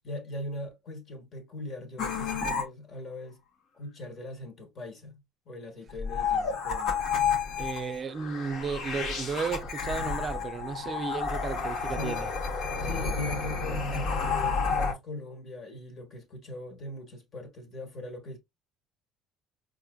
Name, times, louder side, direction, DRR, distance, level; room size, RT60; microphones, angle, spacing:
voice 1, 0.0-3.4 3.7-5.2 5.4-7.0 11.9-12.2 12.8-18.4, left 1 dB, 45° left, 1.3 m, -40 dB
sound 1, 2.0-2.6 5.9-14.9, left 5 dB, 60° left, 1.0 m, -30 dB
voice 2, 7.6-12.3, right 5 dB, 40° right, 0.4 m, -34 dB
4.4 x 2.5 x 2.2 m
supercardioid pair, 80°, 0 cm